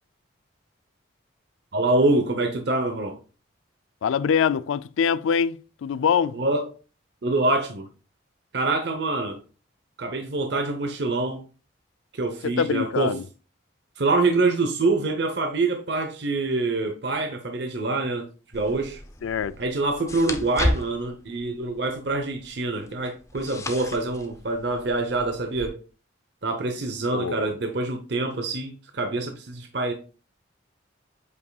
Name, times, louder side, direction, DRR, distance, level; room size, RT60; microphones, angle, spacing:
voice 1, 1.7-3.2 6.3-6.7 7.2-7.9 8.5-9.4 10.0-11.4 12.1-13.2 14.0-18.3 18.5-19.0 19.6-25.8 26.4-29.9, right 2 dB, 55° right, 0.8 m, -25 dB
voice 2, 4.0-6.4 12.6-13.2 19.2-19.5 27.1-27.5, left 7 dB, 85° left, 0.4 m, -24 dB
sound 1, 18.5-25.7, left 1 dB, 15° left, 0.6 m, -34 dB
8.1 x 5.3 x 2.3 m
head